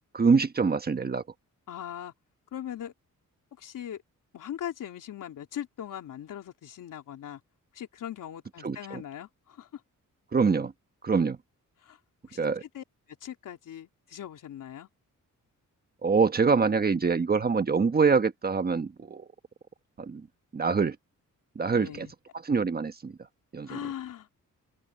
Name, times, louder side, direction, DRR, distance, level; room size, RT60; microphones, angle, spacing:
voice 1, 0.1-1.2 8.6-9.0 10.3-10.7 11.0-11.4 12.4-12.6 16.0-19.2 20.0-20.2 20.5-20.9 21.6-22.1 22.4-23.1 23.5-23.8, right 5 dB, 30° right, 1.3 m, -25 dB
voice 2, 1.7-2.1 2.5-2.9 3.6-4.0 4.3-7.4 7.7-9.8 11.8-12.0 12.3-12.8 13.2-14.9 21.7-22.1 23.6-24.3, left 10 dB, 85° left, 3.4 m, -40 dB
open air
wide cardioid pair, 140°, 32 cm